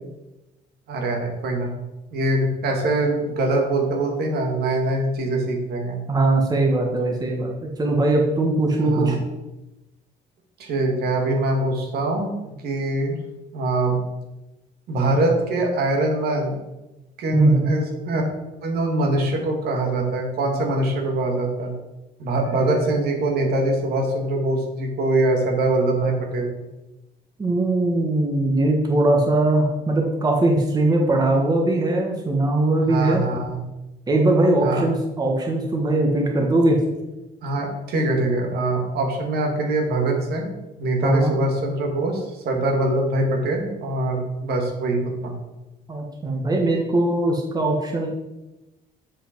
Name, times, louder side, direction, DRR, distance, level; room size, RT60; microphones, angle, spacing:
voice 1, 0.9-1.7 2.1-6.0 8.8-9.1 10.6-13.2 13.5-14.0 14.9-16.6 17.2-18.2 18.6-21.7 22.2-26.5 32.8-33.6 34.6-34.8 37.4-40.5 40.8-45.3, right 2 dB, 70° right, 1 dB, 1.9 m, -23 dB
voice 2, 6.1-9.2 17.3-17.7 27.4-33.2 34.1-36.8 41.0-41.3 45.9-48.1, right 2 dB, 25° right, 0 dB, 1.3 m, -20 dB
7.4 x 5.1 x 4.5 m, 0.99 s
cardioid pair, 110°, 17 cm